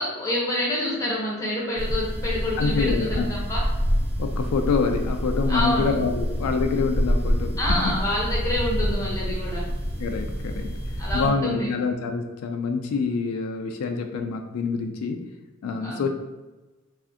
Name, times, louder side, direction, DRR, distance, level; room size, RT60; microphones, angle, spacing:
voice 1, 0.0-3.7 5.5-5.9 7.6-9.6 10.1-10.4 11.0-11.7 15.8-16.0, left 1 dB, 15° left, -4 dB, 0.6 m, -27 dB
sound 1, 1.8-11.3, equal, 60° right, 0.7 m, -27 dB
voice 2, 2.6-3.3 4.2-8.0 10.0-10.7 11.1-15.3 15.6-16.1, left 4 dB, 90° left, 5 dB, 0.3 m, -26 dB
3.4 x 2.4 x 2.5 m, 1.2 s
head